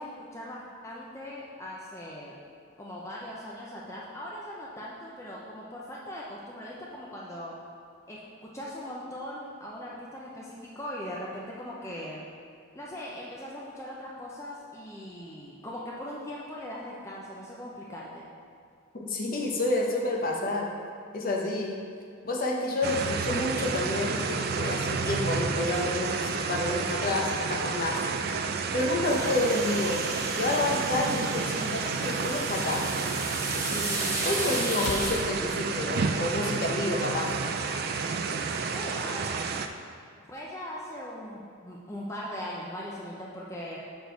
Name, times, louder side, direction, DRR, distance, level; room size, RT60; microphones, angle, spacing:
voice 1, 0.0-2.3 2.8-7.5 8.1-12.2 12.7-18.3 38.7-39.4 40.3-43.8, left 1 dB, 15° left, -5 dB, 0.5 m, -40 dB
voice 2, 18.9-20.7 21.1-21.8 22.2-28.0 28.7-30.0 30.3-32.9 33.7-37.3, left 2 dB, 45° left, -1 dB, 0.8 m, -29 dB
sound 1, 22.8-39.7, right 5 dB, 45° right, 0.3 m, -30 dB
sound 2, 29.1-35.2, right 2 dB, 15° right, 0.8 m, -35 dB
sound 3, 34.7-39.4, left 3 dB, 90° left, 0.5 m, -41 dB
6.7 x 4.4 x 4.5 m, 2.3 s
head